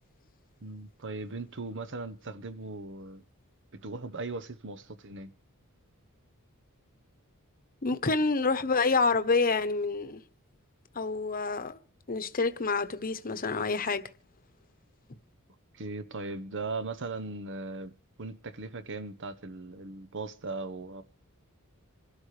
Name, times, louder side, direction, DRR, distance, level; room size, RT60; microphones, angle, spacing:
voice 1, 0.6-3.2 3.8-5.3 15.7-17.9 18.2-21.0, right 3 dB, 60° right, 1.1 m, -38 dB
voice 2, 7.8-10.2 10.9-11.8 12.1-14.1, left 4 dB, 40° left, 1.1 m, -27 dB
26.5 x 12.5 x 3.4 m
head